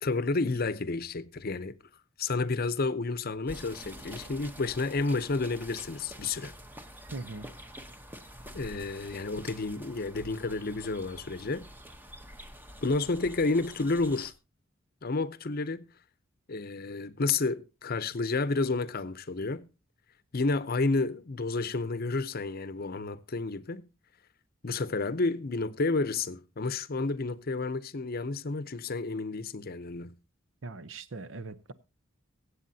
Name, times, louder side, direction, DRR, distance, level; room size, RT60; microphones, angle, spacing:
voice 1, 0.0-1.7 2.2-6.5 8.5-11.7 12.8-14.3 15.0-15.9 16.5-19.7 20.3-23.9 24.6-30.1, left 3 dB, 50° left, 0.7 m, -30 dB
sound 1, 3.5-14.3, equal, 10° right, 0.9 m, -47 dB
voice 2, 7.1-7.5 30.6-31.7, right 3 dB, 75° right, 0.8 m, -40 dB
23.0 x 8.2 x 2.8 m
head